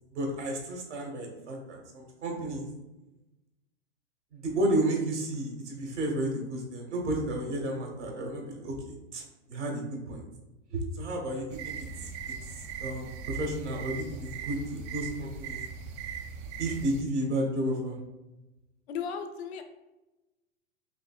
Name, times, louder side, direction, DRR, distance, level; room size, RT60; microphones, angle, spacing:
voice 1, 0.1-2.7 4.3-9.2 9.5-10.2 10.7-11.7 12.0-12.1 12.5-15.6 16.6-18.0, right 1 dB, 75° right, 0 dB, 1.3 m, -32 dB
sound 1, 11.5-17.0, right 6 dB, 35° right, 0.4 m, -39 dB
voice 2, 18.9-19.6, left 6 dB, 60° left, 6 dB, 0.7 m, -35 dB
5.1 x 2.9 x 2.3 m, 1.0 s
hypercardioid pair, 100°, 35 cm